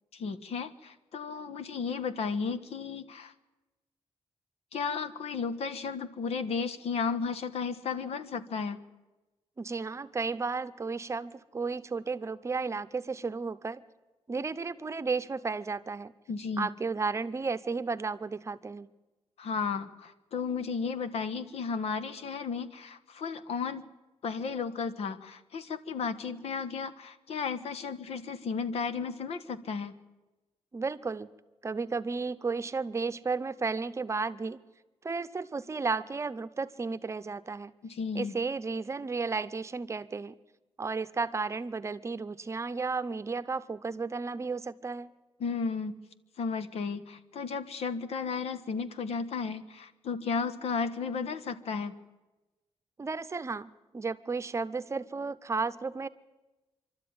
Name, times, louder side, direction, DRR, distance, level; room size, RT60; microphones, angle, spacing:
voice 1, 0.1-3.3 4.7-8.8 16.3-16.7 19.4-23.8 24.2-29.9 37.8-38.3 45.4-46.0 46.4-51.9, left 5 dB, 90° left, 10 dB, 1.2 m, -34 dB
voice 2, 9.6-13.8 14.3-16.1 16.6-18.9 30.7-31.3 31.6-34.6 35.0-37.7 38.1-40.3 40.8-45.1 53.0-56.1, right 4 dB, 30° right, 12 dB, 0.7 m, -33 dB
26.0 x 12.5 x 9.5 m, 1.1 s
wide cardioid pair, 145°, 10 cm